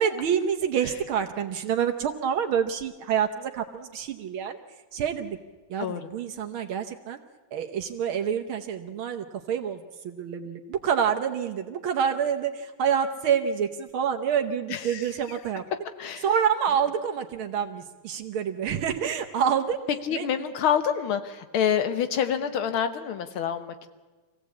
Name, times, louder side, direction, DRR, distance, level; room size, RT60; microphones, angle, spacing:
voice 1, 0.0-4.6 4.9-5.4 5.7-7.2 7.5-15.6 16.2-19.8 20.1-20.3, right 8 dB, 75° right, 5 dB, 1.8 m, -27 dB
voice 2, 5.8-6.1 14.7-15.4 16.0-16.3 20.1-23.9, left 8 dB, 80° left, 9 dB, 2.1 m, -27 dB
24.5 x 16.5 x 8.4 m, 1.3 s
omnidirectional pair, 2.3 m